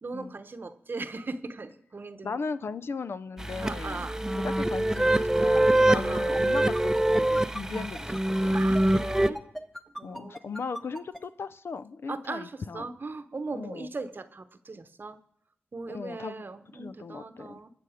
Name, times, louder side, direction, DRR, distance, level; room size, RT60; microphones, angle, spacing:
voice 1, 0.0-2.4 3.6-4.2 5.9-6.2 8.5-9.4 10.0-10.6 12.1-15.2 15.7-17.7, right 3 dB, 50° right, 11 dB, 0.9 m, -38 dB
voice 2, 2.2-8.7 10.0-12.9 13.5-13.9 15.9-16.4 16.7-17.6, left 4 dB, 65° left, 14 dB, 0.5 m, -37 dB
sound 1, 3.4-9.3, right 1 dB, 10° right, 0.6 m, -24 dB
sound 2, 4.9-11.2, equal, 10° left, 1.1 m, -39 dB
20.0 x 6.8 x 5.0 m, 0.70 s
cardioid pair, 45°, 4 cm